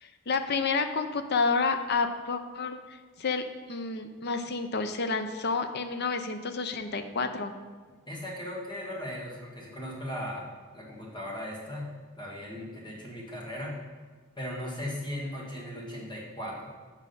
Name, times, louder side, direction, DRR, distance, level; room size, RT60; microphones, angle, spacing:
voice 1, 0.0-2.8 3.2-3.4 3.7-7.5, left 4 dB, 50° left, 8 dB, 0.6 m, -29 dB
voice 2, 8.1-10.4 10.7-11.9 12.2-13.8 14.3-16.7, left 1 dB, 20° left, -3 dB, 1.7 m, -37 dB
7.6 x 4.8 x 5.5 m, 1.4 s
head